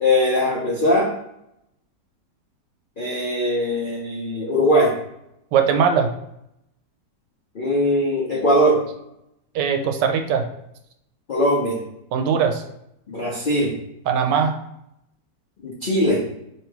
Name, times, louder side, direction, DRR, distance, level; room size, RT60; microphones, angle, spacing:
voice 1, 0.0-1.1 3.0-4.9 7.5-8.8 11.3-11.8 13.1-13.7 15.6-16.2, equal, 65° left, -3 dB, 0.5 m, -20 dB
voice 2, 5.5-6.1 9.5-10.5 12.1-12.6 14.1-14.5, right 7 dB, 90° right, 5 dB, 1.2 m, -20 dB
3.1 x 2.9 x 4.6 m, 0.81 s
omnidirectional pair, 1.8 m